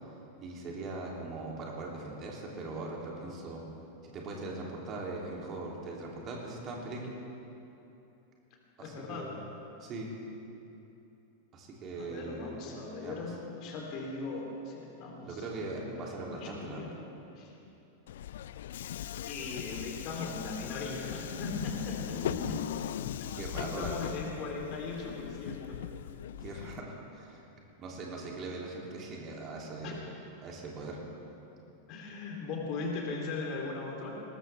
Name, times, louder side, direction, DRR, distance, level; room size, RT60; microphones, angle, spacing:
voice 1, 0.4-3.6 4.0-7.1 8.8-9.4 9.8-10.1 11.5-12.7 13.0-13.2 15.2-17.0 22.1-22.8 23.4-24.1 26.4-27.4 27.8-30.0 30.4-31.0, right 2 dB, 30° right, -2 dB, 3.1 m, -40 dB
voice 2, 8.8-9.3 11.9-17.0 17.4-17.5 19.0-22.6 23.2-25.8 29.8-29.9 31.9-34.1, left 3 dB, 40° left, -1 dB, 3.3 m, -39 dB
Subway metro underground, 18.1-26.8, left 11 dB, 60° left, 0.4 m, -39 dB
21.0 x 19.5 x 3.5 m, 2.9 s
figure-of-eight pair, 90°, 0 cm